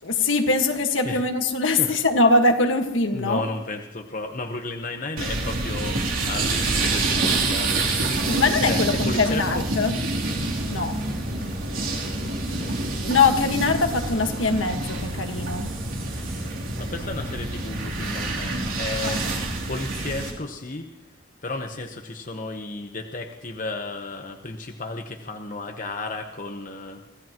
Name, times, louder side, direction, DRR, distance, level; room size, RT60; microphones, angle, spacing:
voice 1, 0.0-3.4 8.3-10.0 10.7-11.0 13.1-15.7 19.0-19.2, left 3 dB, 75° left, 1.6 m, -22 dB
voice 2, 3.1-7.9 8.6-9.7 11.3-13.1 16.4-20.9 21.4-27.0, left 2 dB, 40° left, 1.1 m, -34 dB
sound 1, 5.2-20.3, right 2 dB, 85° right, 3.3 m, -27 dB
25.0 x 16.5 x 3.0 m
head